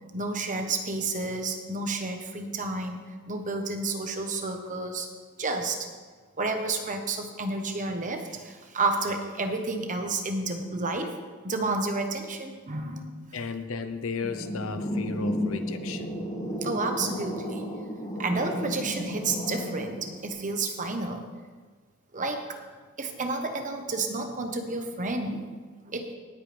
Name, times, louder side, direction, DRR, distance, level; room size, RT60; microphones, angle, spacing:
voice 1, 0.1-5.1 5.4-5.9 6.4-11.2 11.4-13.3 16.6-17.7 18.2-21.2 22.1-22.6 23.0-25.5 25.9-26.1, right 3 dB, 35° right, 5 dB, 1.1 m, -31 dB
voice 2, 13.3-16.1, left 4 dB, 65° left, 9 dB, 0.8 m, -34 dB
sound 1, 14.2-20.3, equal, 30° left, 2.6 m, -33 dB
18.0 x 8.4 x 3.4 m, 1.5 s
head